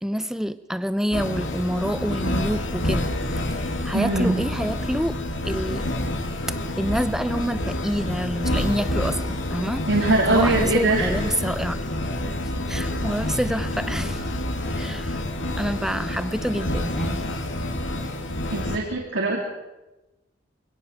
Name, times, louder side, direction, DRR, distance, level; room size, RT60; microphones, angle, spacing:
voice 1, 0.0-3.1 3.6-5.9 6.8-9.9 10.3-11.8 12.7-14.2 14.8-15.2 15.6-17.2, equal, 5° right, 13 dB, 0.6 m, -27 dB
sound 1, 1.1-18.8, left 1 dB, 85° left, 2.4 m, -28 dB
voice 2, 3.9-4.4 9.9-11.1 18.5-19.4, right 2 dB, 80° right, -1 dB, 2.8 m, -22 dB
24.0 x 17.0 x 6.4 m, 1.0 s
head